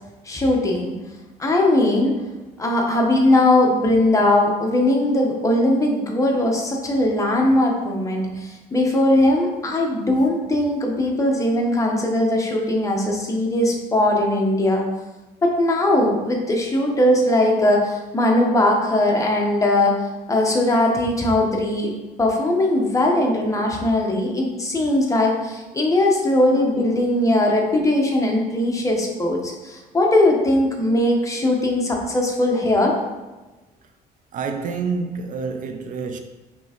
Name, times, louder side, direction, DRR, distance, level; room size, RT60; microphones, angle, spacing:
voice 1, 0.2-0.9 1.4-2.1 2.6-14.8 15.4-20.0 20.3-21.9 22.2-32.9, left 1 dB, 20° left, 0.9 m, -19 dB
voice 2, 34.3-36.2, right 5 dB, 50° right, 0.4 m, -27 dB
5.2 x 3.3 x 2.9 m
cardioid pair, 110°, 17 cm